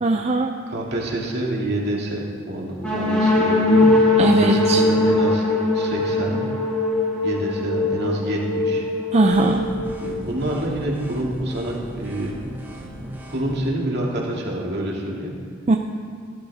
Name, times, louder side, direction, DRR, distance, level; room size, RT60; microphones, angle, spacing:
voice 1, 0.0-0.5 4.2-4.8 9.1-9.6 15.7-15.8, right 2 dB, 30° right, 3 dB, 0.5 m, -19 dB
voice 2, 0.7-3.9 4.2-5.4 5.7-6.4 7.2-8.9 10.0-12.3 13.3-15.3, right 1 dB, 55° right, -3 dB, 2.3 m, -27 dB
sound 1, 2.8-10.5, left 2 dB, 5° left, 3.9 m, -21 dB
sound 2, 9.3-13.7, right 1 dB, 10° right, 1.2 m, -37 dB
15.5 x 12.0 x 3.6 m, 2.2 s
head